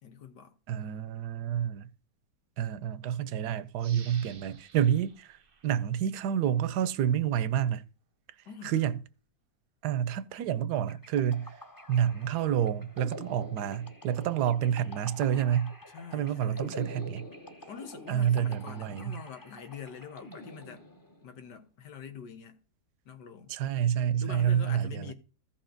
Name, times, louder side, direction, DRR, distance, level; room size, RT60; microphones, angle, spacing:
voice 1, 0.0-0.6 8.5-8.9 15.9-16.7 17.7-20.8 21.2-22.6 23.1-23.5 24.2-25.1, left 6 dB, 90° left, 1.9 m, -44 dB
voice 2, 0.7-1.9 2.6-5.4 5.6-7.8 8.6-9.0 9.8-11.5 11.9-15.7 16.1-17.3 18.1-19.2 23.5-25.1, right 9 dB, 75° right, 1.2 m, -28 dB
sound 1, 3.8-6.5 6.9-7.0, right 6 dB, 40° right, 0.9 m, -54 dB
sound 2, 10.9-21.3, left 1 dB, 15° left, 0.8 m, -47 dB
15.0 x 5.7 x 3.9 m
omnidirectional pair, 1.8 m